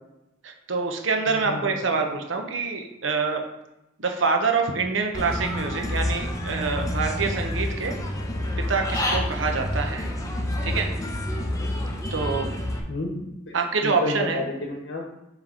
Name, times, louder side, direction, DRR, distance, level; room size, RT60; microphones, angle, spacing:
voice 1, 0.4-3.4 4.0-7.9 8.6-10.1 10.6-10.9 12.1-12.5 13.5-14.4, right 4 dB, 75° right, 4 dB, 0.9 m, -26 dB
voice 2, 1.4-2.0 12.9-13.6 13.8-15.0, left 2 dB, 60° left, 0 dB, 0.9 m, -31 dB
Human voice / Bird, 5.1-12.8, left 1 dB, 15° left, 0.7 m, -28 dB
7.4 x 3.3 x 3.8 m, 0.91 s
head